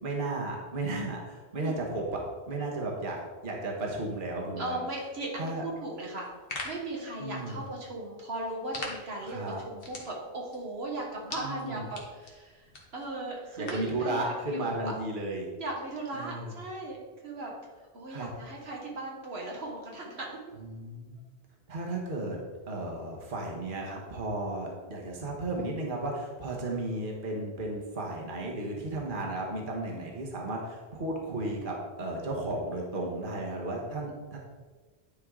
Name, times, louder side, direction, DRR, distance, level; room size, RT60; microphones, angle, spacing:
voice 1, 0.0-2.2 2.5-4.8 5.4-5.6 7.2-7.7 9.2-9.6 11.4-11.9 13.6-15.5 16.1-16.5 18.1-18.3 20.6-21.2 21.7-22.4 22.7-34.4, right 2 dB, 50° right, -1 dB, 1.4 m, -34 dB
voice 2, 4.6-6.3 6.6-14.9 15.6-17.5 17.9-20.3, right 2 dB, 70° right, -2 dB, 1.5 m, -37 dB
sound 1, 6.1-14.0, left 2 dB, 55° left, 1.5 m, -45 dB
9.9 x 4.7 x 3.7 m, 1.4 s
omnidirectional pair, 1.1 m